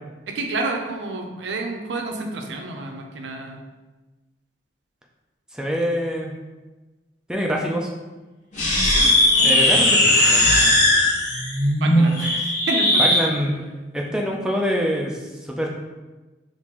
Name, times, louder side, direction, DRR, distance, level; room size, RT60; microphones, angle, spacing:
voice 1, 0.3-3.6 8.9-10.2 11.8-13.3, right 2 dB, 80° right, 3 dB, 0.5 m, -30 dB
voice 2, 5.5-6.3 7.3-7.9 9.4-10.7 13.0-13.7 13.9-15.2 15.5-15.7, equal, 5° right, -1 dB, 0.3 m, -25 dB
sound 1, 8.5-13.2, left 1 dB, 45° left, 0.9 m, -18 dB
3.7 x 2.5 x 2.9 m, 1.2 s
head